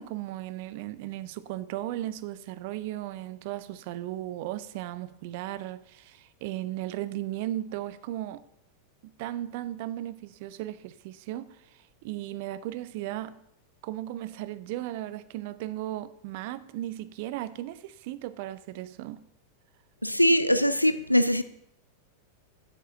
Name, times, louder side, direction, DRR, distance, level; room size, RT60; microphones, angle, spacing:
voice 1, 0.0-8.4 9.0-13.4 13.8-19.2, right 14 dB, 50° right, 0.5 m, -36 dB
voice 2, 20.0-21.4, equal, 90° left, 0.4 m, -22 dB
7.5 x 6.7 x 6.3 m
figure-of-eight pair, 90°, 0 cm